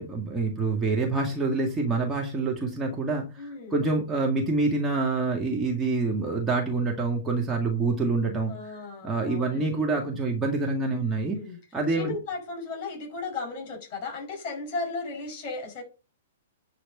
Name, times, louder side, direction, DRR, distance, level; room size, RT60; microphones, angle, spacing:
voice 1, 0.0-8.5 9.0-11.4 11.7-12.1, right 3 dB, 10° right, -1 dB, 1.9 m, -26 dB
voice 2, 3.4-3.8 8.5-9.8 11.2-11.6 11.9-15.8, left 3 dB, 35° left, 3 dB, 5.7 m, -35 dB
10.5 x 4.1 x 6.5 m, 0.31 s
figure-of-eight pair, 110°, 0 cm